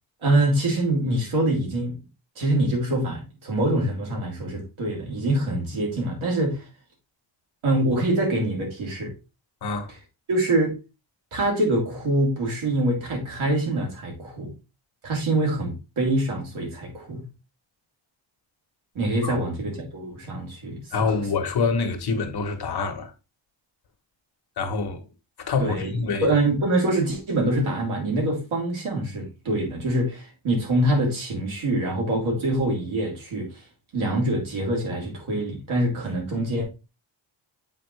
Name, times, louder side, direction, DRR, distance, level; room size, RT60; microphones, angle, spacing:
voice 1, 0.2-2.0 2.4-6.6 7.6-9.1 10.3-10.7 11.3-14.5 15.0-17.2 18.9-21.1 25.6-33.5 33.9-36.6, right 1 dB, 85° right, 3.3 m, -25 dB
voice 2, 9.6-9.9 19.2-19.4 20.9-23.1 24.6-25.0 25.4-26.3, left 4 dB, 55° left, 1.3 m, -26 dB
7.7 x 4.7 x 3.2 m
wide cardioid pair, 170°, 47 cm